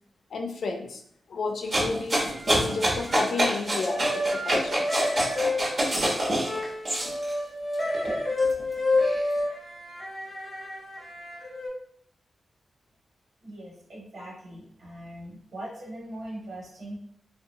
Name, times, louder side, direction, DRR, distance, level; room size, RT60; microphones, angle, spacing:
voice 1, 0.3-1.0 1.3-4.9, left 3 dB, 75° left, 3 dB, 0.4 m, -32 dB
Crunching noises, 1.7-7.3 7.8-9.2, right 1 dB, 45° right, 0.8 m, -26 dB
sound 1, 2.2-3.3 3.6-11.7, left 2 dB, 25° left, 0.7 m, -30 dB
voice 2, 13.4-17.0, right 1 dB, 65° right, -4 dB, 1.2 m, -41 dB
2.8 x 2.0 x 2.6 m, 0.67 s
wide cardioid pair, 115°, 0 cm